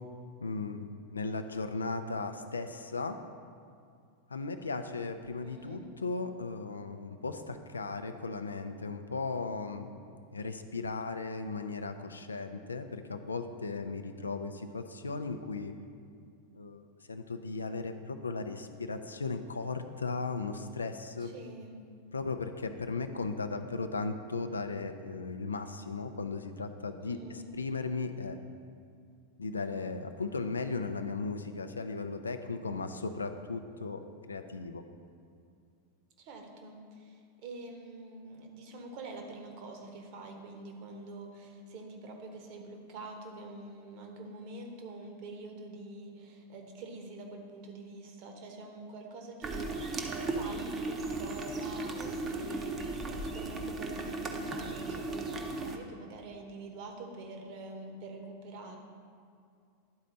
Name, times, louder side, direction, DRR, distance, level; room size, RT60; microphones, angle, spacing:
voice 1, 0.4-3.2 4.3-9.9 10.3-15.7 16.6-16.8 17.1-21.3 22.1-28.4 29.4-34.0 34.3-34.8, left 3 dB, 75° left, 8 dB, 0.4 m, -36 dB
voice 2, 5.4-5.8 21.2-21.8 27.0-27.5 36.2-58.8, right 3 dB, 45° right, 3 dB, 1.0 m, -46 dB
sound 1, 49.4-55.8, right 2 dB, 25° right, 0.7 m, -36 dB
11.0 x 4.2 x 3.9 m, 2.4 s
figure-of-eight pair, 90°, 0 cm